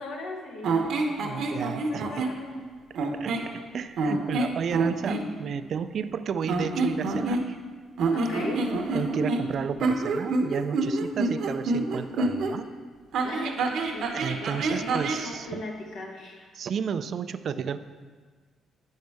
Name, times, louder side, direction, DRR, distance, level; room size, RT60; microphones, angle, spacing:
voice 1, 0.0-2.8 8.1-8.7 13.2-14.1 14.4-16.5, left 2 dB, 75° left, 1 dB, 1.3 m, -39 dB
sound 1, 0.6-2.4 2.9-3.5 4.0-5.2 6.4-7.7 8.0-12.5 13.1-15.3, right 3 dB, 75° right, 0.9 m, -27 dB
voice 2, 1.2-2.2 3.1-7.6 8.9-12.7 14.1-15.6 16.5-17.8, right 7 dB, 60° right, 11 dB, 0.3 m, -32 dB
8.8 x 6.5 x 3.5 m, 1.5 s
cardioid pair, 90°, 0 cm